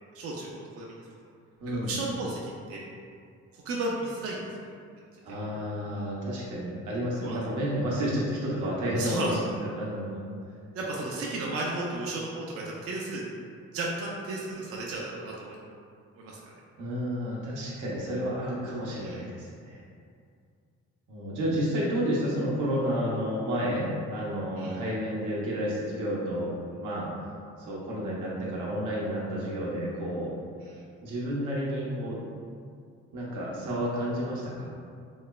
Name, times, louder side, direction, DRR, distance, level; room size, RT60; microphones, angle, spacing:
voice 1, 0.1-0.5 0.8-1.0 1.7-2.9 3.5-4.5 7.2-7.4 8.9-9.3 10.7-13.2 13.7-15.6 16.2-16.4 19.0-19.3 24.6-24.8 30.6-30.8, right 2 dB, 50° right, -3 dB, 0.4 m, -34 dB
voice 2, 1.6-2.0 5.2-10.2 16.8-19.8 21.1-26.5 26.8-27.1 27.6-30.3 31.0-32.2 33.1-34.7, equal, 80° right, -5 dB, 0.7 m, -31 dB
3.1 x 2.0 x 2.2 m, 2.3 s
cardioid pair, 90°, 30 cm